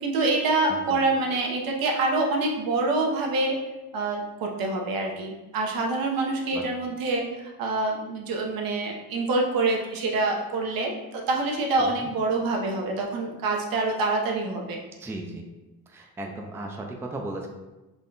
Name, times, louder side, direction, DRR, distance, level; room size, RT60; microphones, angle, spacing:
voice 1, 0.0-3.6 3.9-14.8, right 3 dB, 70° right, 0 dB, 0.9 m, -26 dB
voice 2, 15.0-15.5 15.9-17.5, right 2 dB, 5° right, 1 dB, 0.4 m, -36 dB
3.7 x 2.2 x 3.9 m, 1.1 s
cardioid pair, 90°, 37 cm